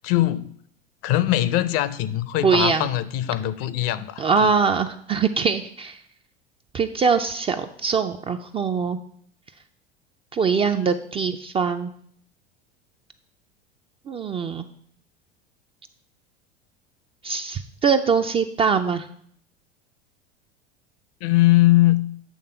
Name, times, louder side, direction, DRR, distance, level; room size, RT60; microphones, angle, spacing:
voice 1, 0.0-0.5 1.0-4.5 21.2-22.1, left 15 dB, 50° left, 15 dB, 0.5 m, -21 dB
voice 2, 2.4-2.9 4.2-6.0 6.7-9.0 10.3-11.9 14.1-14.7 17.2-19.1, right 5 dB, 20° right, 7 dB, 0.3 m, -22 dB
8.6 x 3.5 x 5.5 m, 0.63 s
hypercardioid pair, 85°, 32 cm